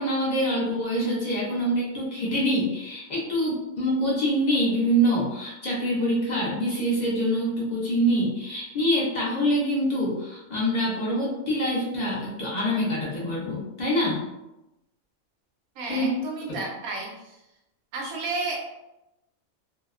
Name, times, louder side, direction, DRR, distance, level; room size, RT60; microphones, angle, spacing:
voice 1, 0.0-14.3 15.9-16.1, equal, 60° left, -5 dB, 0.4 m, -25 dB
voice 2, 15.8-17.3 17.9-18.6, right 3 dB, 90° right, -1 dB, 1.1 m, -32 dB
2.7 x 2.0 x 2.3 m, 0.92 s
omnidirectional pair, 1.5 m